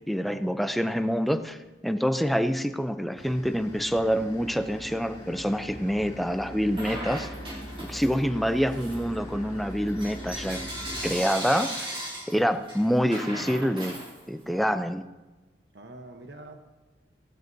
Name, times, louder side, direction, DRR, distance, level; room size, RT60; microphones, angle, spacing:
voice 1, 0.1-1.6 1.8-7.3 7.8-10.6 11.0-14.0 14.3-15.1, equal, ahead, 9 dB, 0.5 m, -26 dB
sound 1, 3.2-11.1, equal, 30° left, 2.8 m, -41 dB
Bell / Coin (dropping), 6.7-8.3 8.7-14.6, right 1 dB, 30° right, 3.1 m, -38 dB
voice 2, 7.5-7.9 15.7-16.7, right 2 dB, 65° right, 5 dB, 1.0 m, -46 dB
17.0 x 12.0 x 2.7 m, 1.1 s
head